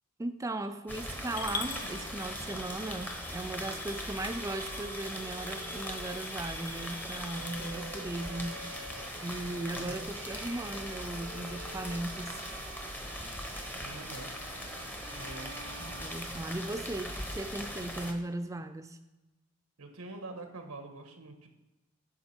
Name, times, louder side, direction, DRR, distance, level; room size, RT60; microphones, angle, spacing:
voice 1, 0.2-8.6 9.2-12.3 15.8-19.0, right 2 dB, 15° right, 8 dB, 0.4 m, -37 dB
sound 1, 0.9-18.1, equal, 10° left, 0.8 m, -40 dB
Bowed string instrument, 1.1-17.0, right 4 dB, 60° right, 0.9 m, -49 dB
Coin (dropping) / Glass, 1.4-7.7, left 3 dB, 40° left, 0.9 m, -44 dB
voice 2, 9.7-10.1 13.7-14.3 15.1-15.5 19.8-21.5, right 2 dB, 90° right, 5 dB, 1.4 m, -45 dB
9.5 x 6.1 x 4.4 m, 1.0 s
head